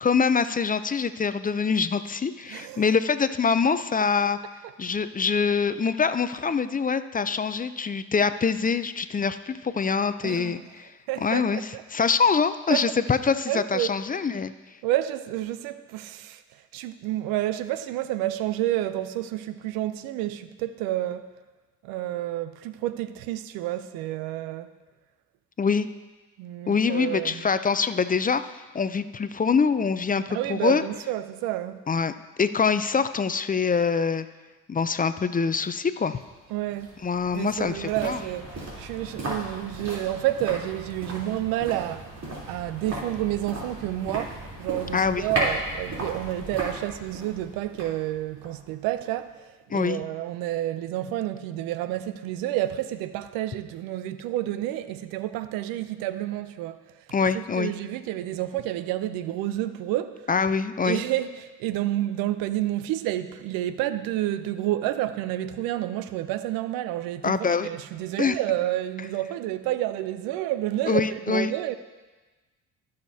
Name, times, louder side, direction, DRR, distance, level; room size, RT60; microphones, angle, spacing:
voice 1, 0.0-4.4 4.8-10.9 11.2-14.5 25.6-25.9 26.7-28.4 28.7-30.8 31.9-32.1 32.4-34.3 34.7-36.2 37.0-38.2 44.9-45.2 49.7-50.0 57.1-57.7 60.3-61.0 67.2-67.7 68.2-68.4 70.9-71.5, left 5 dB, 25° left, 12 dB, 0.5 m, -24 dB
voice 2, 2.5-2.8 10.2-10.6 11.1-11.8 12.7-12.9 13.5-14.0 14.8-16.4 16.7-21.3 21.8-24.8 26.4-27.5 30.3-31.8 36.5-36.9 37.3-38.5 38.8-56.8 57.3-60.3 60.8-71.8, right 14 dB, 80° right, 13 dB, 0.6 m, -29 dB
sound 1, 36.2-49.3 49.6-49.7, right 1 dB, 50° right, 3.4 m, -36 dB
15.5 x 6.6 x 2.8 m, 1.2 s
hypercardioid pair, 55°, 35 cm